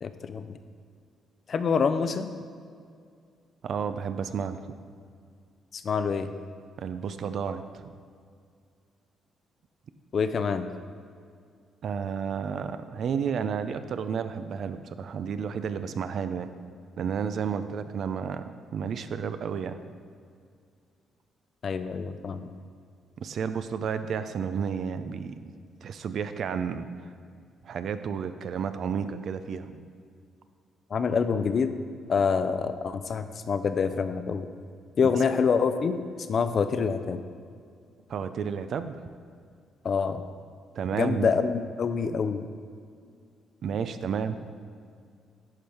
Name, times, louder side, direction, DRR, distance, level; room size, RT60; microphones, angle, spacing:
voice 1, 0.0-0.5 1.5-2.3 5.7-6.3 10.1-10.7 21.6-22.5 30.9-31.8 32.1-34.5 35.0-36.0 36.3-37.2 39.8-40.2 40.9-42.5, left 5 dB, 50° left, 10 dB, 0.5 m, -26 dB
voice 2, 3.6-4.7 6.8-7.9 11.8-16.5 17.0-18.4 18.7-19.8 23.2-25.5 25.8-27.1 27.6-29.8 35.0-35.2 38.1-39.1 40.7-41.3 43.6-44.5, right 7 dB, 65° right, 10 dB, 0.5 m, -31 dB
10.5 x 4.5 x 4.9 m, 2.2 s
cardioid pair, 90°, 0 cm